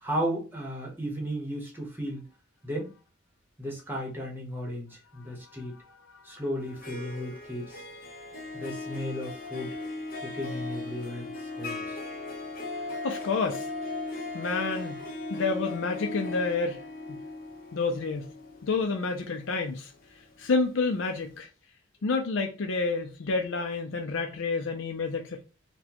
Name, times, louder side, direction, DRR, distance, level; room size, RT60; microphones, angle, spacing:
voice 1, 0.0-2.3 2.6-2.9 3.6-5.7 6.2-7.8 8.5-9.8 10.2-11.3 11.6-12.0, equal, 10° right, 1.0 m, -34 dB
Harp, 6.6-20.6, left 2 dB, 45° left, 0.8 m, -38 dB
voice 2, 13.0-13.6 14.3-15.0 15.3-16.8 17.1-17.2 17.7-18.3 18.6-19.9 20.4-21.5 22.0-25.4, left 4 dB, 70° left, 0.4 m, -29 dB
4.1 x 2.2 x 2.9 m
head